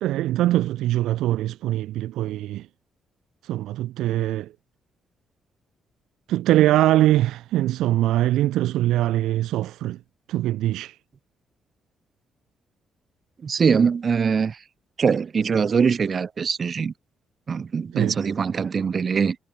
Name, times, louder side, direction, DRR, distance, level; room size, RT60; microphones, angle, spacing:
voice 1, 0.0-2.7 3.5-4.5 6.3-10.0 10.3-10.9 17.9-18.2, right 14 dB, 85° right, 1.0 m, -22 dB
voice 2, 13.4-14.6 15.0-16.9 17.5-19.4, right 6 dB, 45° right, 2.0 m, -22 dB
cardioid pair, 75°, 0 cm